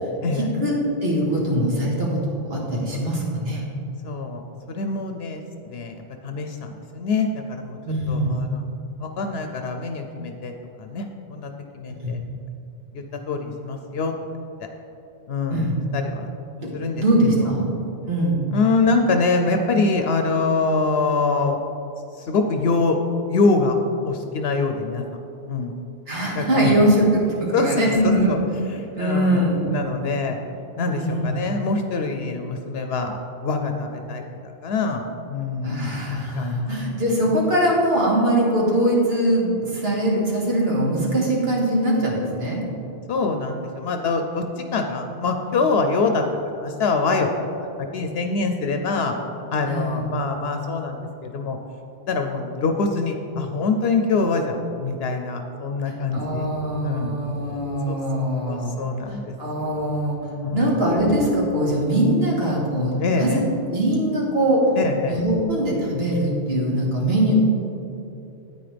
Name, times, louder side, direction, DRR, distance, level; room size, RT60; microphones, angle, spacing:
voice 1, 0.4-0.8 1.0-3.6 7.8-8.4 12.0-12.2 15.5-15.8 16.6-16.7 17.0-17.7 18.1-18.4 26.1-28.4 28.9-29.6 30.9-31.3 35.6-42.6 49.7-50.0 55.9-58.8 59.1-63.4 63.7-64.7 65.1-67.3, right 1 dB, 70° right, -3 dB, 1.9 m, -22 dB
voice 2, 4.0-4.4 4.7-7.8 8.1-8.6 9.0-10.5 10.8-12.2 12.9-14.1 15.3-15.7 15.9-16.3 16.7-17.0 17.4-17.5 18.5-21.6 22.2-23.0 23.3-23.8 24.0-25.0 25.5-25.7 26.3-26.7 27.5-28.4 28.7-30.4 30.8-36.0 36.4-36.5 43.1-46.2 46.5-47.3 47.6-47.7 47.9-49.1 49.5-51.6 52.1-56.5 56.8-57.2 57.9-58.0 58.5-59.8 60.4-60.8 63.0-63.4 64.8-65.2, left 3 dB, 75° left, 5 dB, 0.8 m, -24 dB
9.6 x 8.8 x 3.4 m, 2.9 s
omnidirectional pair, 1.1 m